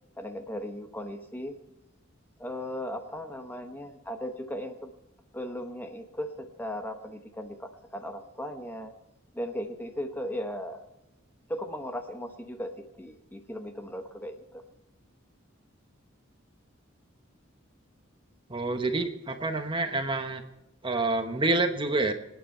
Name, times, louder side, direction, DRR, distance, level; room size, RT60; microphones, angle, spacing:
voice 1, 0.2-1.5 2.4-4.9 5.3-8.9 9.3-10.8 11.5-14.6, equal, 10° left, 6 dB, 1.0 m, -37 dB
voice 2, 18.5-20.4 20.8-22.1, right 2 dB, 25° right, 6 dB, 1.1 m, -27 dB
26.5 x 9.3 x 4.4 m, 0.92 s
head